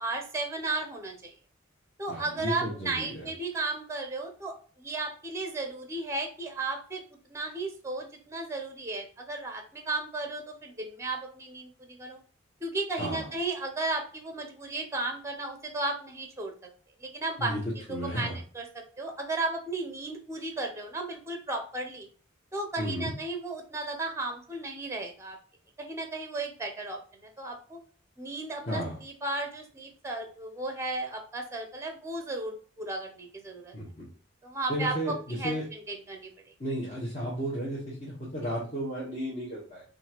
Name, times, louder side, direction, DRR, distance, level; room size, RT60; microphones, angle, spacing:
voice 1, 0.0-1.3 2.0-7.0 7.3-12.2 12.6-16.5 17.0-17.5 17.9-18.7 19.0-22.1 22.5-25.4 25.8-27.0 27.4-27.8 28.2-33.7 34.4-36.3, right 2 dB, 15° right, 4 dB, 0.6 m, -34 dB
voice 2, 2.1-3.3 13.0-13.3 17.4-17.6 17.9-18.4 22.8-23.1 28.7-29.0 33.7-34.0 34.7-35.6 36.6-39.8, equal, 40° left, -7 dB, 1.2 m, -33 dB
5.3 x 2.6 x 2.9 m, 0.41 s
head